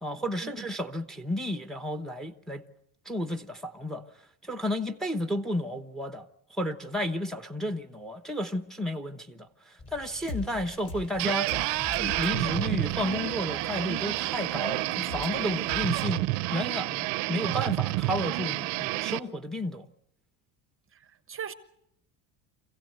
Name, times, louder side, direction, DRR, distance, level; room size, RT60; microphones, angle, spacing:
voice 1, 0.0-2.6 3.1-4.0 4.5-6.3 6.6-9.5 9.9-11.5 12.0-19.9, left 1 dB, ahead, 1.0 m, -32 dB
sound 1, 9.8-15.8, left 3 dB, 30° left, 7.9 m, -47 dB
sound 2, 10.3-10.5 10.9-11.1 11.5-11.7 11.9-12.3 15.1-15.3 15.7-16.0, left 3 dB, 65° left, 3.5 m, -37 dB
sound 3, 11.2-19.2, right 21 dB, 75° right, 0.8 m, -29 dB
voice 2, 20.9-21.5, right 8 dB, 30° right, 0.9 m, -40 dB
26.5 x 16.0 x 8.0 m
cardioid pair, 130°, 43 cm